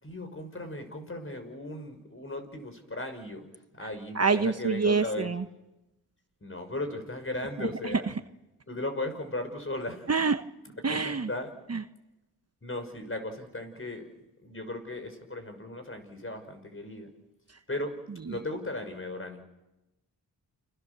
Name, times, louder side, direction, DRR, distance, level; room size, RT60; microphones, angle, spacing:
voice 1, 0.0-3.4 3.7-5.3 6.4-8.1 8.7-10.1 10.9-11.5 12.6-14.1 14.4-17.1 17.7-18.0 18.3-19.4, left 2 dB, 30° left, 7 dB, 5.8 m, -36 dB
voice 2, 4.1-5.4 7.6-8.0 10.1-10.4 10.8-11.3 11.7-11.8 18.3-18.4, right 4 dB, 35° right, 9 dB, 1.1 m, -26 dB
29.5 x 22.0 x 6.9 m, 1.0 s
cardioid pair, 50°, 41 cm